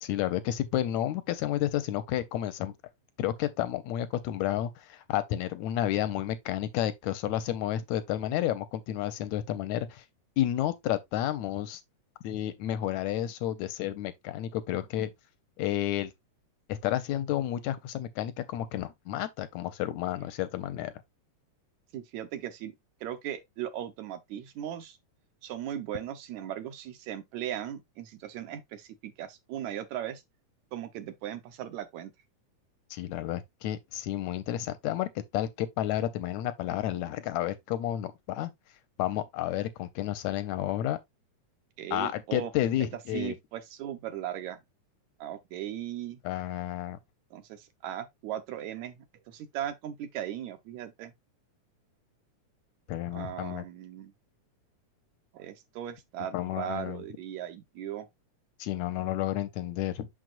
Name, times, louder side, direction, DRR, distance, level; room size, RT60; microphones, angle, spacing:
voice 1, 0.0-2.7 3.2-10.0 10.4-11.8 12.2-15.1 15.6-16.1 16.7-20.9 32.9-38.5 39.0-41.0 41.9-43.3 46.2-47.0 52.9-53.6 56.3-57.0 58.6-60.1, left 12 dB, 80° left, 1.7 m, -31 dB
voice 2, 21.9-22.7 23.0-25.0 25.4-30.2 30.7-32.1 41.8-42.5 43.1-44.6 45.2-46.2 47.3-51.1 53.1-54.1 55.3-58.1, right 11 dB, 75° right, 2.0 m, -38 dB
6.4 x 6.1 x 2.4 m
omnidirectional pair, 3.6 m